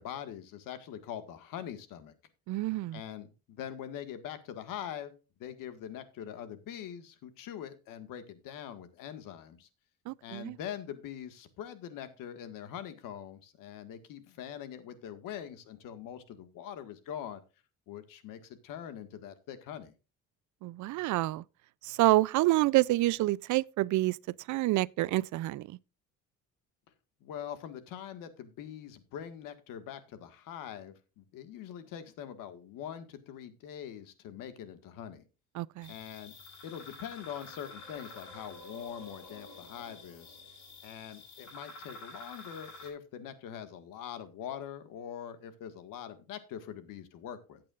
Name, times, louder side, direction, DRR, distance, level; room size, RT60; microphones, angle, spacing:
voice 1, 0.0-2.1 2.9-5.1 5.4-9.7 10.2-17.4 17.9-19.9 27.2-35.2 35.9-36.3 36.6-40.4 40.8-47.6, left 9 dB, 80° left, 1.8 m, -43 dB
voice 2, 2.5-3.0 10.1-10.6 20.6-21.4 21.8-24.2 24.5-25.8 35.5-35.9, right 18 dB, 65° right, 0.5 m, -28 dB
sound 1, 35.8-42.9, left 2 dB, 55° left, 6.3 m, -49 dB
15.0 x 8.7 x 2.5 m
cardioid pair, 135°, 32 cm